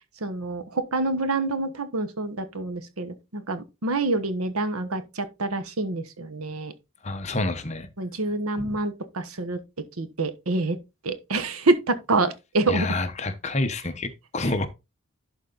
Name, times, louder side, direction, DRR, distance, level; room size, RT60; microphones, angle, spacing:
voice 1, 0.2-6.7 8.0-9.6 10.0-10.8 11.0-12.9, right 2 dB, 90° right, 1.2 m, -27 dB
voice 2, 7.0-7.9 8.6-8.8 12.7-14.7, left 2 dB, 30° left, 1.0 m, -28 dB
11.5 x 4.1 x 4.0 m
head